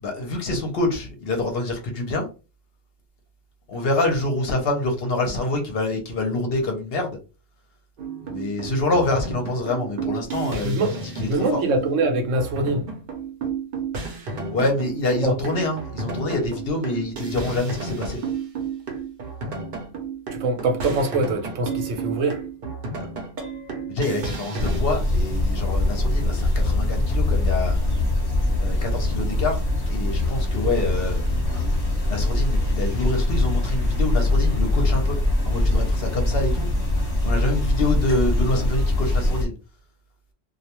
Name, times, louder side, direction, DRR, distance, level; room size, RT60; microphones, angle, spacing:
voice 1, 0.0-2.3 3.7-7.2 8.2-11.6 14.5-18.2 23.0-23.1 23.9-27.8 28.6-29.6 29.9-31.2 32.1-35.2 35.4-36.7 37.2-39.5, left 2 dB, 60° left, 0.7 m, -26 dB
sound 1, 8.0-24.8, right 5 dB, 55° right, 0.7 m, -32 dB
voice 2, 10.6-11.0 11.2-12.9 15.2-15.3 20.3-22.4, right 2 dB, 80° right, 1.0 m, -23 dB
sound 2, 24.6-39.4, left 2 dB, 30° left, 0.8 m, -22 dB
2.3 x 2.1 x 2.9 m
omnidirectional pair, 1.3 m